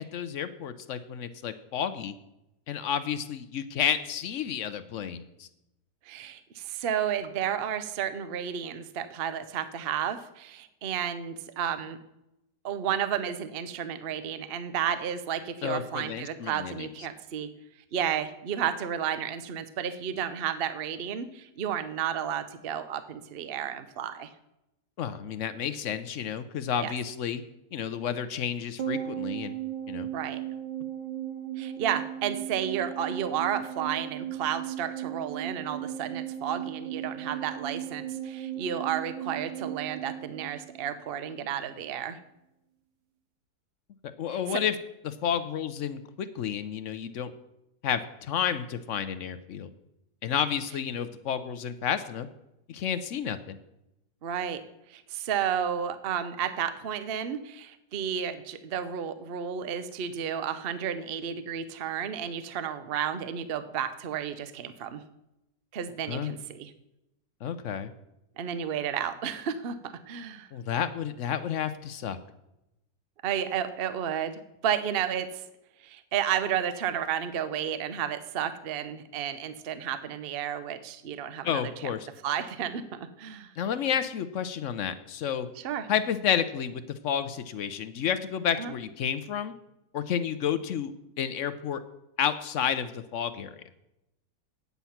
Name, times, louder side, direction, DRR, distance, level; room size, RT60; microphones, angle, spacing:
voice 1, 0.0-2.1 2.7-5.5 15.6-16.9 25.0-27.4 27.7-29.6 29.9-30.1 44.2-44.7 45.0-47.3 47.8-49.7 50.2-52.3 52.7-53.6 66.1-66.3 67.4-67.9 70.5-72.2 81.4-82.0 83.6-85.5 85.9-89.5 89.9-90.9 91.2-91.8 92.2-93.6, left 8 dB, 60° left, 12 dB, 0.8 m, -31 dB
voice 2, 6.1-12.0 12.6-17.5 17.9-24.3 26.8-26.9 30.1-30.4 31.6-42.2 44.5-44.6 54.2-54.6 54.9-65.0 65.7-66.7 68.4-70.5 73.2-75.4 75.8-81.9 82.2-83.5 85.6-85.9 88.6-88.7, right 9 dB, 50° right, 11 dB, 0.7 m, -32 dB
sound 1, 28.8-41.3 41.6-41.7, right 11 dB, 85° right, 1.6 m, -36 dB
9.4 x 8.3 x 5.7 m, 0.87 s
omnidirectional pair, 1.8 m